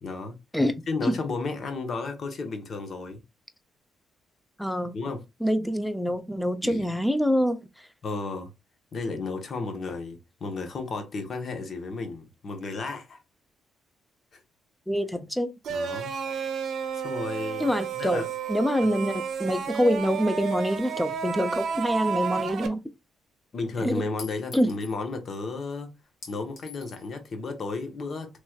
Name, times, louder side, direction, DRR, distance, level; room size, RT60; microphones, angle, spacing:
voice 1, 0.0-0.3 0.9-3.2 4.9-5.2 6.6-6.8 8.0-8.5 8.9-13.2 14.3-14.4 15.7-16.1 16.9-17.7 18.0-18.3 23.5-25.9 26.3-28.4, left 3 dB, 50° left, 0.9 m, -33 dB
voice 2, 0.5-1.2 4.6-5.0 5.4-7.9 14.9-15.5 17.6-22.8 23.8-24.0 24.5-24.7, equal, 5° left, 0.5 m, -26 dB
sound 1, 15.6-22.7, right 6 dB, 65° right, 0.6 m, -31 dB
Chink clink, 24.2-25.0 26.2-27.1, left 6 dB, 65° left, 1.5 m, -45 dB
3.1 x 3.0 x 2.3 m
cardioid pair, 90°, 0 cm